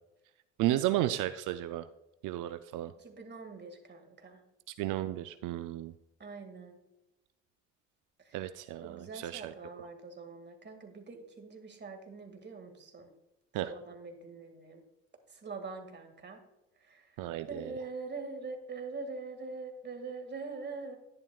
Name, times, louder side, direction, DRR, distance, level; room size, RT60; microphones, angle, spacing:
voice 1, 0.6-1.9 2.2-2.9 4.8-5.9 8.3-9.5 13.5-13.7 17.2-17.8, right 14 dB, 90° right, 10 dB, 0.5 m, -33 dB
voice 2, 2.9-4.4 6.2-6.8 8.2-8.4 8.8-13.1 13.6-14.8 15.3-16.4 16.8-17.2 17.5-21.0, right 4 dB, 35° right, 5 dB, 2.0 m, -44 dB
11.0 x 10.5 x 2.3 m, 0.95 s
cardioid pair, 90°, 30 cm